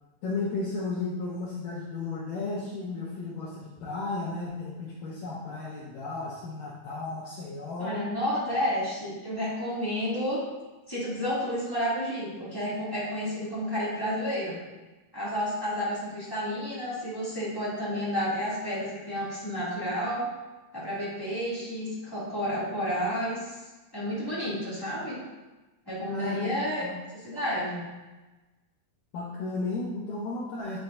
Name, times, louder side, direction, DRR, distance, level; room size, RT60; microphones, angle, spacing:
voice 1, 0.2-8.0 26.1-27.0 29.1-30.8, left 3 dB, 70° left, -5 dB, 2.2 m, -34 dB
voice 2, 7.8-10.4 10.9-14.6 15.1-20.2 20.7-23.6 23.9-25.2 25.8-26.8 27.1-27.9, equal, 10° left, -10 dB, 1.3 m, -31 dB
10.5 x 5.8 x 2.6 m, 1.2 s
omnidirectional pair, 4.6 m